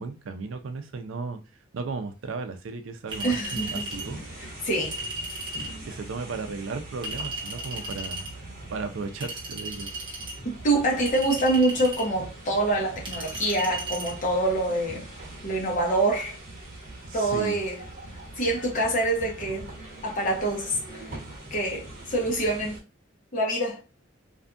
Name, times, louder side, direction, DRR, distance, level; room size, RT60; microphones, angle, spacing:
voice 1, 0.0-1.4 1.7-4.2 5.9-8.2 8.7-10.0 17.1-17.6, right 4 dB, 75° right, 0.4 m, -35 dB
Chink clink, 3.1-4.1 4.9-5.8 7.0-8.3 9.2-10.4 11.1-12.1 13.1-14.1, right 2 dB, 25° right, 0.8 m, -35 dB
sound 1, 3.1-22.8, right 2 dB, 45° right, 1.1 m, -42 dB
voice 2, 3.2-3.8 4.4-5.0 10.4-15.0 15.4-16.3 17.1-17.8 18.4-19.7 20.0-20.8 21.5-22.8 23.3-23.8, right 1 dB, 40° left, 0.9 m, -25 dB
2.6 x 2.3 x 2.4 m
head